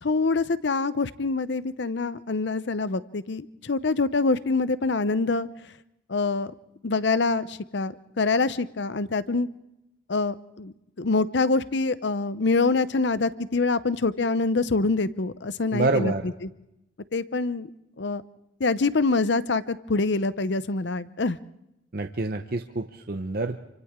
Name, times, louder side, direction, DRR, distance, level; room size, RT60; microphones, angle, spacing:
voice 1, 0.0-5.5 6.1-6.5 6.8-9.5 10.1-16.1 16.4-16.5 17.1-17.7 18.0-18.2 18.6-21.4, left 3 dB, 65° left, 15 dB, 0.7 m, -25 dB
voice 2, 15.7-16.3 21.9-23.6, right 3 dB, 50° right, 6 dB, 0.7 m, -27 dB
28.5 x 25.0 x 3.7 m, 0.87 s
head